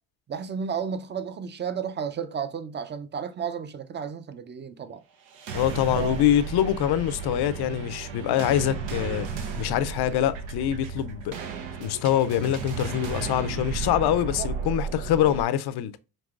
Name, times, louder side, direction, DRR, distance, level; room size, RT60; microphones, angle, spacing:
voice 1, 0.3-5.0 6.0-6.2 14.4-14.5, right 7 dB, 25° right, 0.5 m, -32 dB
sound 1, 5.3-15.4, right 5 dB, 90° right, 0.8 m, -34 dB
voice 2, 5.5-11.3 11.8-16.0, left 11 dB, 65° left, 0.5 m, -25 dB
5.3 x 2.9 x 2.4 m
cardioid pair, 85°, 43 cm